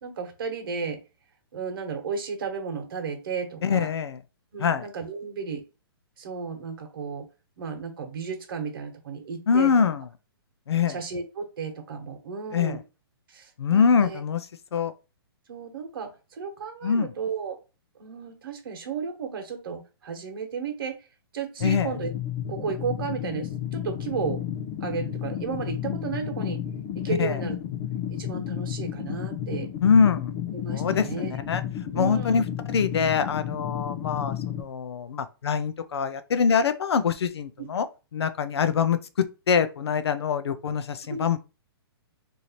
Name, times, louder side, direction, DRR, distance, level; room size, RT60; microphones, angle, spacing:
voice 1, 0.0-1.0 1.5-3.9 4.5-5.6 6.2-7.3 7.6-9.7 10.9-12.8 13.3-14.2 15.5-17.6 18.0-21.0 21.3-22.1 22.5-24.4 24.8-26.6 26.9-27.6 28.1-29.7 30.5-31.3 31.9-32.4 37.6-37.7 41.1-41.2, right 6 dB, 55° right, 1.2 m, -33 dB
voice 2, 3.6-4.2 4.6-4.9 9.5-10.1 10.7-11.0 12.5-12.8 13.6-14.4 14.7-14.9 16.8-17.1 21.6-21.9 27.1-27.4 29.8-30.3 30.7-31.6 31.9-32.4 32.7-37.9 38.1-41.4, left 6 dB, 85° left, 0.5 m, -24 dB
sound 1, 21.6-34.6, left 10 dB, 25° left, 0.4 m, -32 dB
3.2 x 2.7 x 4.2 m
hypercardioid pair, 165°, 13 cm